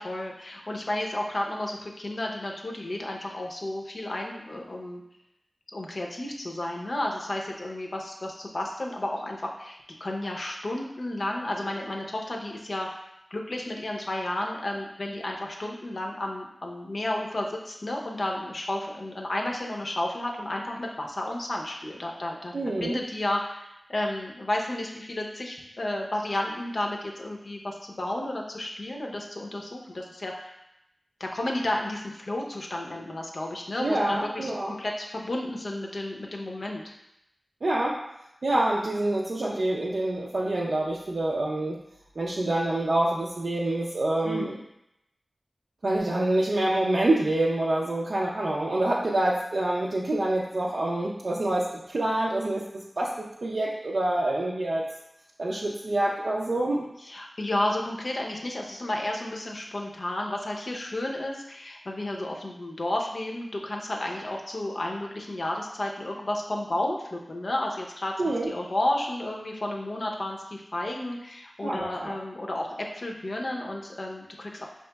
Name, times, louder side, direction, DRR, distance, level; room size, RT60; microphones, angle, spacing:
voice 1, 0.0-5.0 5.7-12.9 13.3-22.5 22.8-30.6 31.2-36.8 44.3-44.6 57.1-68.1 68.5-72.7 72.9-74.7, left 1 dB, 65° left, 0 dB, 0.6 m, -32 dB
voice 2, 22.5-23.0 33.8-34.7 37.6-38.0 38.4-41.8 42.2-44.5 45.8-52.7 53.0-54.9 55.4-56.8 68.2-68.5 71.6-72.2, right 1 dB, 75° right, -4 dB, 0.4 m, -26 dB
5.2 x 2.9 x 2.2 m, 0.82 s
wide cardioid pair, 60°, 0 cm